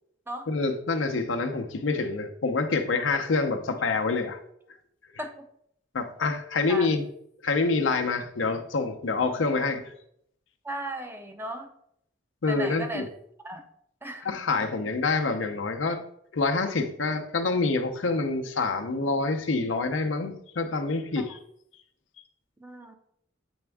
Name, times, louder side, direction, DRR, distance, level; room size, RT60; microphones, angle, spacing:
voice 1, 0.5-4.4 5.9-7.0 7.4-9.9 12.4-13.1 14.2-16.0 16.3-21.4, left 3 dB, 90° left, 5 dB, 0.7 m, -27 dB
voice 2, 10.6-11.7 12.5-13.1 13.4-13.6 14.0-14.3 14.6-14.7 21.3-21.4 22.6-23.0, right 1 dB, 10° right, 6 dB, 0.5 m, -36 dB
7.9 x 3.5 x 3.4 m, 0.69 s
head